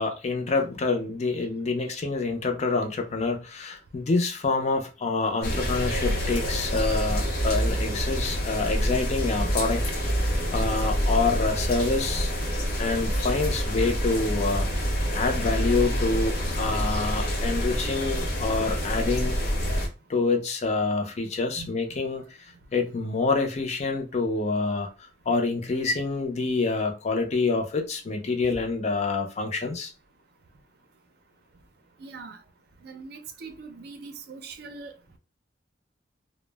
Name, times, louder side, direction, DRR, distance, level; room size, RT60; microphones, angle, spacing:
voice 1, 0.0-9.8 10.2-12.3 12.8-14.7 15.1-19.4 20.1-22.2 22.7-29.9, left 3 dB, 40° left, 0.4 m, -27 dB
sound 1, 5.4-19.9, equal, 60° left, 0.8 m, -27 dB
voice 2, 32.0-32.4 32.8-34.9, right 4 dB, 65° right, 0.4 m, -41 dB
2.0 x 2.0 x 3.2 m
head